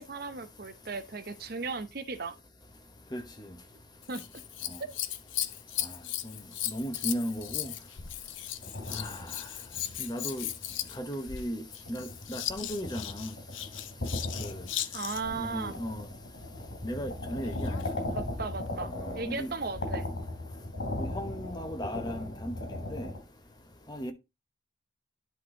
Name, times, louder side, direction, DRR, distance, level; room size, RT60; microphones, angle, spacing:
voice 1, 0.0-2.4 4.1-4.3 4.8-4.9 14.9-15.8 18.1-20.1, right 4 dB, 50° right, 0.7 m, -36 dB
Scissors, 4.0-15.4 17.3-17.9 18.7-18.8, left 12 dB, 80° left, 0.7 m, -37 dB
voice 2, 6.7-7.7 8.9-9.1 10.0-10.4 11.0-11.6 11.9-13.3 14.4-14.5 15.4-16.0 16.8-17.7 19.3-19.5 21.0-22.5 22.9-23.0 23.9-24.1, equal, 20° left, 0.9 m, -35 dB
sound 1, 7.1-7.8 8.3-11.1 11.5-23.2, left 1 dB, 65° left, 3.4 m, -38 dB
10.5 x 4.1 x 3.8 m
head